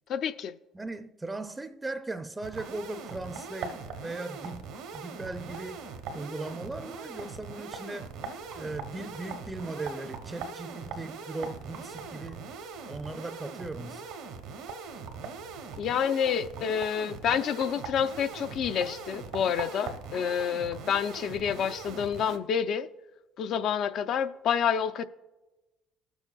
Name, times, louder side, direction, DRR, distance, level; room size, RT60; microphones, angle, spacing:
voice 1, 0.1-0.5 15.8-22.9 23.4-25.1, left 8 dB, 65° left, 0.4 m, -28 dB
voice 2, 0.7-4.7 4.9-5.9 6.1-8.1 8.5-12.5 12.9-14.0, right 2 dB, 20° right, 0.4 m, -38 dB
sound 1, 2.4-22.4, right 5 dB, 85° right, 0.9 m, -41 dB
18.5 x 7.0 x 2.3 m
supercardioid pair, 70°, 0 cm